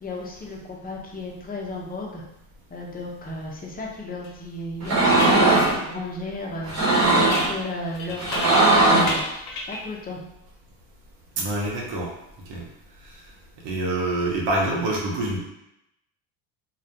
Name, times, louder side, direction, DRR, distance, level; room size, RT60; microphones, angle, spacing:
voice 1, 0.0-2.2 2.7-6.8 7.2-9.2 9.7-10.2, left 2 dB, 20° left, -1 dB, 0.6 m, -34 dB
sound 1, 4.2-4.3 5.2-5.5 7.3-8.8 9.1-9.9, left 2 dB, 75° left, 0.6 m, -33 dB
sound 2, 4.8-5.8 6.6-7.5 8.2-9.2, right 2 dB, 35° right, 1.0 m, -18 dB
voice 2, 11.4-12.1 12.5-12.6 13.6-15.4, right 2 dB, 65° right, -2 dB, 0.9 m, -26 dB
2.4 x 2.1 x 2.8 m, 0.85 s
supercardioid pair, 85°, 45 cm